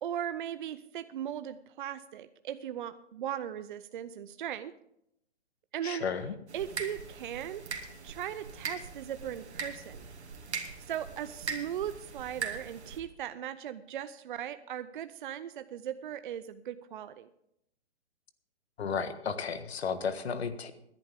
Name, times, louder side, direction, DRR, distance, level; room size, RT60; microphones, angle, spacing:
voice 1, 0.0-4.7 5.7-6.1 6.5-10.0 10.5-17.3, right 10 dB, 50° right, 11 dB, 0.6 m, -38 dB
voice 2, 5.8-6.3 18.8-20.7, left 6 dB, 65° left, 10 dB, 1.5 m, -33 dB
Dripping Medium A, 6.5-13.0, right 5 dB, 75° right, 2.3 m, -41 dB
19.5 x 10.5 x 3.6 m, 0.77 s
hypercardioid pair, 140°, 33 cm